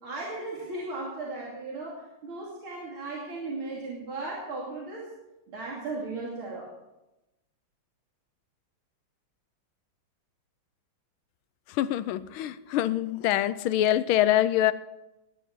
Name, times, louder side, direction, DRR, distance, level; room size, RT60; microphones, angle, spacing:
voice 1, 0.0-5.1 5.5-6.7, right 3 dB, 80° right, -5 dB, 3.5 m, -36 dB
voice 2, 11.8-14.7, left 12 dB, 85° left, 15 dB, 1.5 m, -24 dB
20.0 x 10.0 x 4.7 m, 0.96 s
omnidirectional pair, 2.3 m